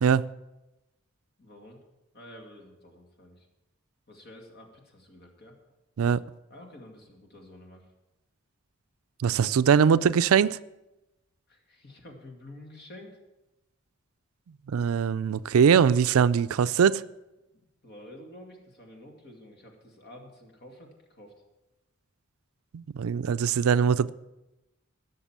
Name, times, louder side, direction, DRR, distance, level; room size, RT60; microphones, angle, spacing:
voice 1, 1.4-1.8 2.1-3.5 4.1-5.5 6.5-7.9 11.5-13.2 17.5-21.3, left 1 dB, 50° left, 2.3 m, -49 dB
voice 2, 9.2-10.6 14.7-17.0 22.7-24.1, right 7 dB, 80° right, 0.4 m, -22 dB
15.5 x 6.6 x 7.3 m
head